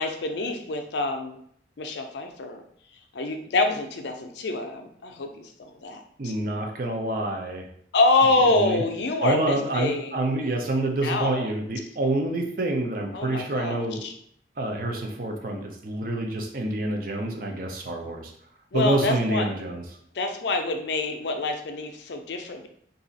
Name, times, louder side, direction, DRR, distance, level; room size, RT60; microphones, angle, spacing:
voice 1, 0.0-1.4 1.8-2.6 3.1-6.3 7.9-10.5 11.0-11.5 13.1-14.1 18.7-19.4 20.1-22.7, left 2 dB, 75° left, 5 dB, 0.5 m, -26 dB
voice 2, 6.2-7.7 8.5-8.9 9.2-14.0 14.6-18.3 18.7-19.8, right 2 dB, 50° right, 2 dB, 0.5 m, -27 dB
2.7 x 2.4 x 4.0 m, 0.65 s
head